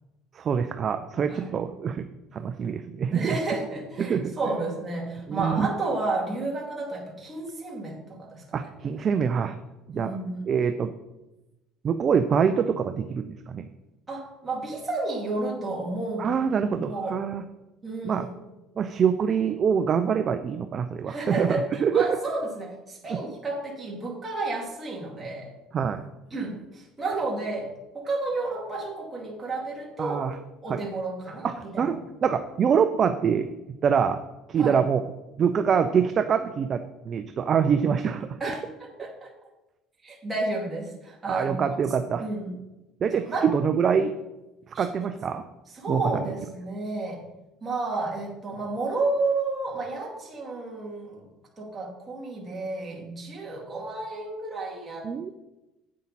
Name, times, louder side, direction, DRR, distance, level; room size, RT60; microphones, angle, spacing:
voice 1, 0.3-2.1 2.3-3.4 4.0-4.4 5.3-5.7 8.5-9.6 9.9-10.1 10.5-10.9 11.8-13.7 16.2-17.4 18.0-18.3 18.8-22.2 23.1-23.2 25.7-26.1 30.0-30.4 30.7-30.8 31.4-33.5 33.8-34.2 34.5-35.0 35.4-38.4 41.3-42.3 43.0-44.1 44.7-45.4 45.9-46.2 55.0-55.3, right 7 dB, 35° right, 8 dB, 0.5 m, -25 dB
voice 2, 3.1-8.7 9.9-10.4 14.1-16.3 16.7-17.2 17.8-18.3 21.1-25.5 26.3-30.2 30.6-31.9 34.6-34.8 38.4-39.3 40.0-41.6 42.2-42.5 43.1-43.5 44.7-44.8 45.7-47.2 47.6-51.3 51.6-55.3, right 3 dB, 15° right, -3 dB, 2.4 m, -31 dB
8.6 x 8.4 x 4.1 m, 0.97 s
cardioid pair, 145°, 0 cm